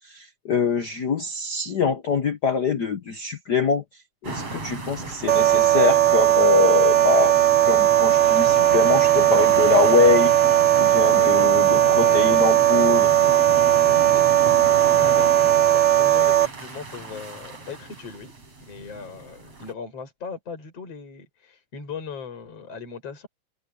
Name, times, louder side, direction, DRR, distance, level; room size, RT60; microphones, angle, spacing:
voice 1, 0.0-7.3 7.6-10.3 10.8-13.2, left 5 dB, 80° left, 0.9 m, -24 dB
sound 1, 4.2-19.7, right 3 dB, 50° right, 6.8 m, -35 dB
sound 2, 5.3-16.5, right 12 dB, 65° right, 1.0 m, -18 dB
voice 2, 11.1-11.4 12.0-12.5 14.1-18.3 18.7-23.3, left 5 dB, 50° left, 6.5 m, -38 dB
omnidirectional pair, 3.5 m